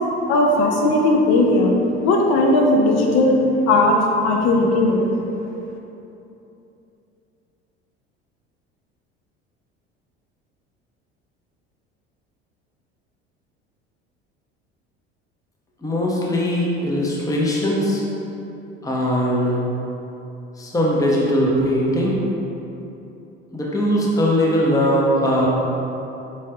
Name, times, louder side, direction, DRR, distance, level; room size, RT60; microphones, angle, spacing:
voice 1, 0.3-1.8 2.0-3.4 3.7-5.0, left 2 dB, 50° left, 1 dB, 0.7 m, -17 dB
voice 2, 15.8-18.0 18.8-19.6 20.6-22.2 23.5-25.5, equal, 10° left, -4 dB, 0.8 m, -20 dB
4.8 x 4.2 x 2.4 m, 2.9 s
hypercardioid pair, 65°, 32 cm